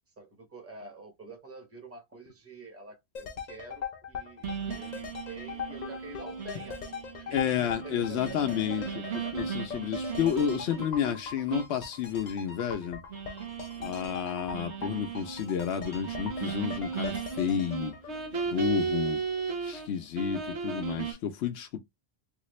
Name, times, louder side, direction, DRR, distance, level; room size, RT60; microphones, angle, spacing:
voice 1, 0.2-6.8 7.2-9.5, right 3 dB, 15° right, 0.9 m, -47 dB
sound 1, 3.1-19.1 19.4-19.5, left 6 dB, 50° left, 0.7 m, -41 dB
sound 2, 4.4-11.1 11.5-11.8 12.1-12.2 13.1-19.9 20.1-21.1, right 5 dB, 85° right, 1.3 m, -36 dB
voice 2, 7.3-9.0 9.3-13.0 13.8-17.9 18.5-19.2 19.6-21.8, left 9 dB, 80° left, 0.8 m, -31 dB
3.4 x 2.4 x 3.0 m
omnidirectional pair, 1.1 m